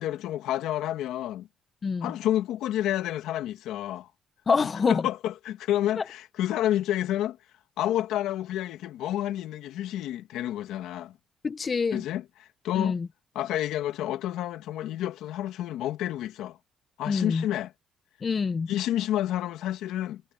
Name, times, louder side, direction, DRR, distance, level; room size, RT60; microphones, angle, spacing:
voice 1, 0.0-1.5 2.0-4.1 4.9-7.4 7.8-11.2 11.9-13.0 13.3-16.6 17.0-17.7 18.7-20.2, left 12 dB, 90° left, 2.1 m, -29 dB
voice 2, 1.8-2.1 4.5-5.1 6.0-6.1 11.4-12.0 12.7-13.1 17.1-17.4 18.2-18.7, left 5 dB, 40° left, 1.1 m, -26 dB
cardioid pair, 90°, 0 cm